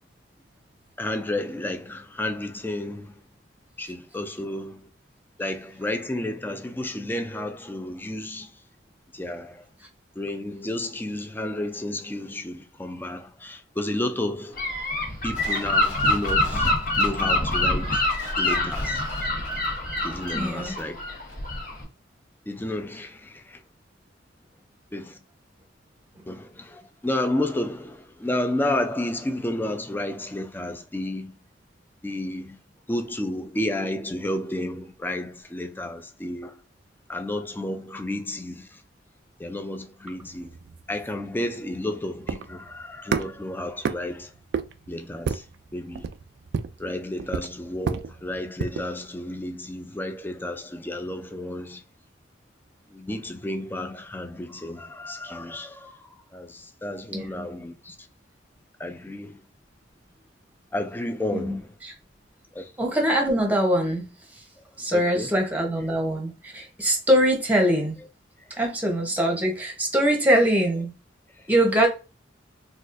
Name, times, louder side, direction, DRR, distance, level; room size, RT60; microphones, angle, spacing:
voice 1, 1.0-3.2 3.8-4.9 5.4-8.6 9.1-9.7 10.2-14.6 15.2-18.0 18.4-19.0 20.0-21.0 22.5-23.6 24.9-25.2 26.3-31.4 32.0-32.6 32.9-36.6 37.1-38.8 39.4-40.5 40.9-44.3 44.9-45.4 45.7-46.1 46.8-51.8 52.9-58.0 58.8-59.4 60.7-61.8 62.5-62.7 64.9-65.3 71.4-71.5, left 1 dB, 10° left, 0.4 m, -31 dB
Gull seagull / Wind, 14.6-21.8, left 1 dB, 50° left, 1.2 m, -25 dB
sound 1, 15.3-21.0 21.3-21.4, left 2 dB, 75° left, 1.4 m, -43 dB
voice 2, 20.3-20.7 57.1-57.4 61.3-61.9 62.8-64.1 64.8-68.0 68.6-70.9 71.5-71.9, right 1 dB, 10° right, 0.9 m, -23 dB
sound 2, 40.2-48.9, right 6 dB, 60° right, 0.3 m, -32 dB
4.1 x 2.4 x 2.5 m
head